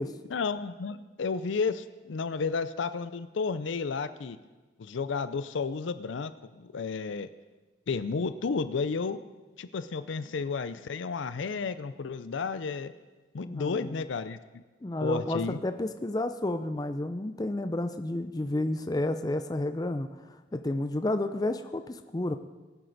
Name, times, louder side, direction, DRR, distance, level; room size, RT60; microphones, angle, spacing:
voice 1, 0.3-4.4 4.8-7.3 7.9-9.2 9.6-12.9 13.3-14.4 15.0-15.6, left 4 dB, 75° left, 13 dB, 0.5 m, -32 dB
voice 2, 13.4-14.0 14.8-22.4, left 1 dB, 20° left, 8 dB, 0.4 m, -31 dB
21.0 x 7.7 x 4.0 m, 1.2 s
head